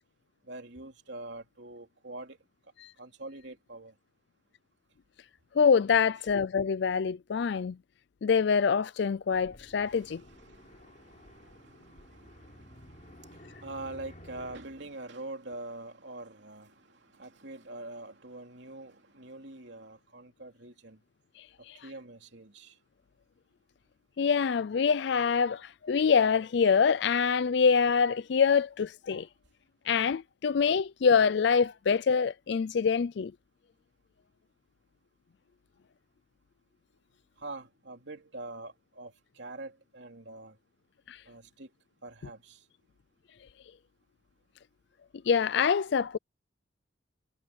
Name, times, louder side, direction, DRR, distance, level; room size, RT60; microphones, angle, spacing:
voice 1, 0.5-2.4 3.0-3.9 9.8-21.0 21.8-22.8 37.4-40.6 41.3-41.7 42.0-42.6, right 2 dB, 60° right, 3.1 m, -45 dB
voice 2, 5.6-7.8 8.2-10.2 21.7-21.8 24.2-29.3 29.9-33.3 41.1-41.2 45.3-46.2, left 6 dB, 55° left, 0.4 m, -25 dB
sound 1, 9.3-14.6, left 1 dB, 40° left, 4.2 m, -53 dB
head